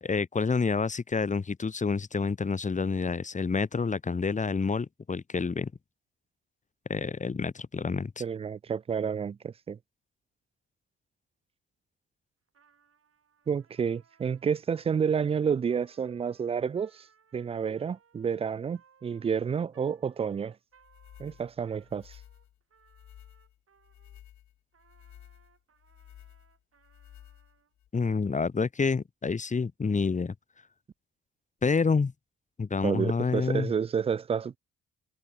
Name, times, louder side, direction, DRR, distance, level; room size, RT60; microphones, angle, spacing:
voice 1, 0.0-5.7 6.9-8.1 27.9-30.3 31.6-32.1 32.6-33.7, left 4 dB, 20° left, 1.1 m, -28 dB
voice 2, 8.2-9.8 13.5-17.1 17.3-20.6 21.2-22.2 32.8-34.6, right 7 dB, 20° right, 0.4 m, -30 dB
Trumpet, 12.5-24.2 24.7-27.7, right 6 dB, 45° right, 7.7 m, -65 dB
sound 1, 20.8-27.9, left 12 dB, 60° left, 3.1 m, -54 dB
hypercardioid pair, 50°, 33 cm